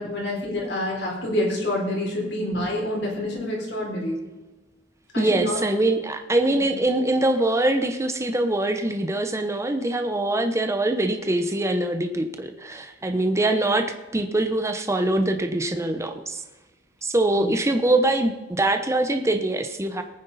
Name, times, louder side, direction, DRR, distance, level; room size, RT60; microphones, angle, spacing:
voice 1, 0.0-4.3 5.1-5.6 6.5-6.7 17.3-17.5, left 1 dB, 70° left, -2 dB, 4.1 m, -27 dB
voice 2, 5.2-16.4 17.0-20.0, right 2 dB, 15° right, 7 dB, 0.8 m, -23 dB
20.5 x 9.6 x 4.0 m, 1.2 s
head